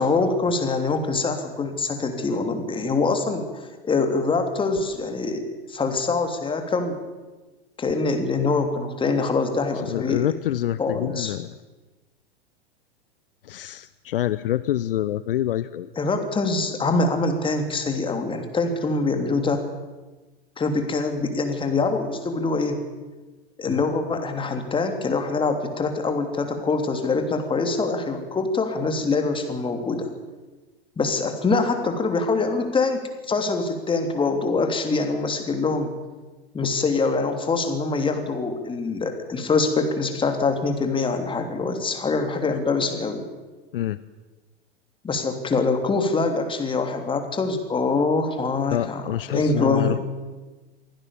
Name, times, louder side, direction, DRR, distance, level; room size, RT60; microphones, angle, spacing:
voice 1, 0.0-7.0 7.8-10.3 10.8-11.3 15.9-19.6 20.6-22.8 23.6-30.1 31.0-33.0 33.3-35.9 36.5-43.2 45.0-49.0 49.3-50.0, left 3 dB, 15° left, 6 dB, 3.1 m, -24 dB
voice 2, 9.7-11.6 13.4-15.9 23.7-23.8 43.7-44.0 48.7-50.0, left 12 dB, 60° left, 15 dB, 0.8 m, -27 dB
23.0 x 16.5 x 7.2 m, 1.2 s
figure-of-eight pair, 95°, 31 cm